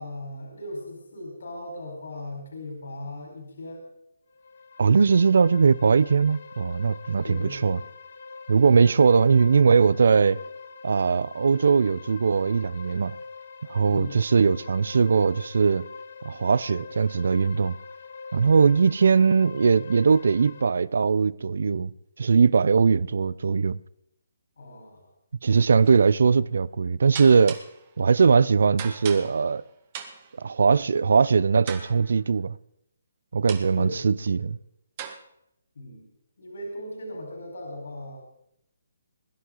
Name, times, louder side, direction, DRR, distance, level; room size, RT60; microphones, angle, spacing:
voice 1, 0.0-3.9 7.2-7.8 8.7-8.9 13.9-14.2 24.6-25.1 33.7-34.4 35.7-36.1 36.4-38.3, left 1 dB, 80° left, 4.4 m, -38 dB
sound 1, 4.3-20.6, left 4 dB, 60° left, 1.4 m, -44 dB
voice 2, 4.8-7.8 8.5-10.4 10.8-13.2 13.7-15.8 16.2-17.7 18.3-21.9 22.2-23.8 25.4-27.6 28.0-29.6 30.4-32.5 33.3-34.6, right 5 dB, 70° right, 0.5 m, -20 dB
sound 2, 25.8-26.1 27.1-27.9 28.8-29.6 29.9-30.4 31.7-32.2 33.5-33.8 35.0-35.1, right 8 dB, 30° right, 1.8 m, -39 dB
22.0 x 11.5 x 3.8 m
hypercardioid pair, 160°, 0 cm